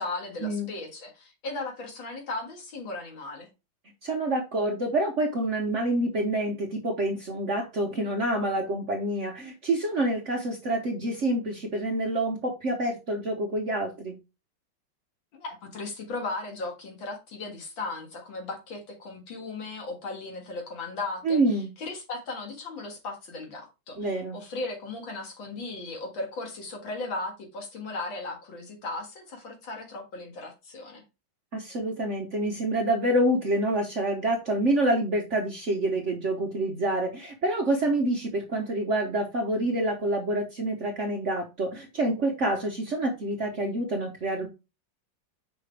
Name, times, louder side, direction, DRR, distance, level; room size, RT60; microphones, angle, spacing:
voice 1, 0.0-3.5 15.3-31.0, left 3 dB, 70° left, 2.4 m, -36 dB
voice 2, 4.0-14.2 21.2-21.7 24.0-24.4 31.5-44.5, right 1 dB, 50° right, 1.0 m, -27 dB
5.7 x 5.1 x 3.3 m
omnidirectional pair, 2.2 m